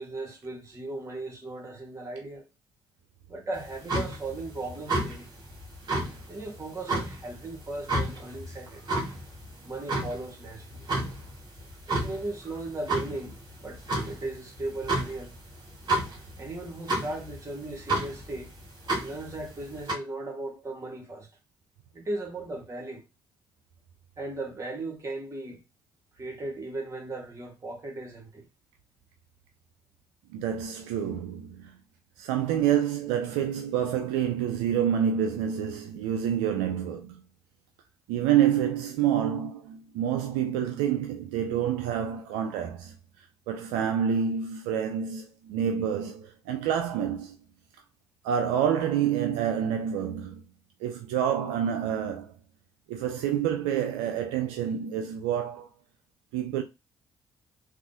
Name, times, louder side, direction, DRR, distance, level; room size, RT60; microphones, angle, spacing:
voice 1, 0.0-2.5 3.3-5.3 6.3-8.9 9.6-10.9 11.9-13.3 13.6-15.3 16.4-18.5 19.0-21.3 21.9-23.0 24.2-25.6 26.2-28.5, right 2 dB, 30° right, 1.5 m, -37 dB
sound 1, 3.5-19.9, right 1 dB, 45° right, 1.6 m, -32 dB
voice 2, 30.3-31.8 32.2-37.2 38.1-43.0 43.5-47.4 48.2-50.4 50.8-52.3 52.9-55.7 56.3-56.6, right 9 dB, 80° right, 0.4 m, -28 dB
3.5 x 2.4 x 2.7 m
hypercardioid pair, 45°, 10 cm